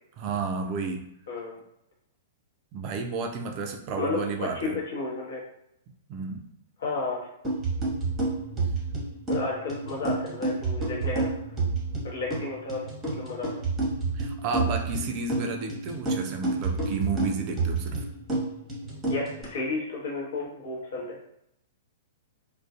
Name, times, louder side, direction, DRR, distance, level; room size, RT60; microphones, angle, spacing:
voice 1, 0.2-1.0 2.7-4.8 6.1-6.5 14.1-18.0, right 4 dB, 40° right, 4 dB, 0.3 m, -32 dB
voice 2, 1.3-1.6 4.0-5.4 6.8-7.3 9.3-11.3 12.0-12.8 13.1-13.6 19.1-21.2, left 3 dB, 60° left, -3 dB, 0.9 m, -32 dB
sound 1, 7.4-19.4, right 3 dB, 15° right, 0.8 m, -30 dB
2.4 x 2.2 x 2.4 m, 0.77 s
figure-of-eight pair, 105°, 0 cm